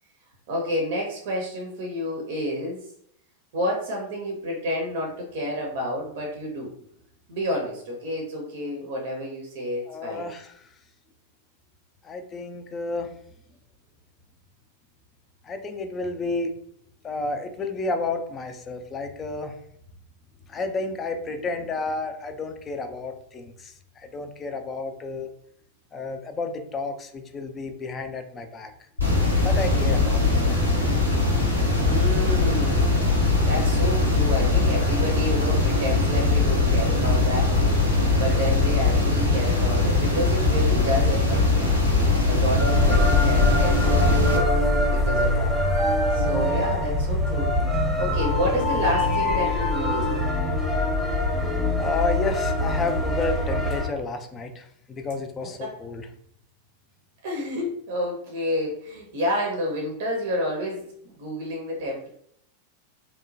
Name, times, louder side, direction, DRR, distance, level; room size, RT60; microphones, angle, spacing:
voice 1, 0.5-2.8 3.5-6.7 7.3-10.3 31.7-32.9 33.5-37.5 38.1-41.7 42.2-44.6 44.9-45.6 46.1-47.5 48.0-50.2 55.6-55.7 57.2-62.1, equal, 55° right, 0 dB, 0.6 m, -29 dB
voice 2, 9.9-10.7 12.0-13.1 15.4-16.5 17.0-19.5 20.5-25.3 25.9-28.7 29.4-30.6 38.0-38.5 51.8-56.1, left 3 dB, 25° left, 6 dB, 0.3 m, -31 dB
sound 1, 29.0-44.4, left 3 dB, 90° left, 0.8 m, -21 dB
sound 2, 42.6-53.9, left 1 dB, 5° right, 0.7 m, -23 dB
2.9 x 2.0 x 2.6 m, 0.66 s
figure-of-eight pair, 90°, 0 cm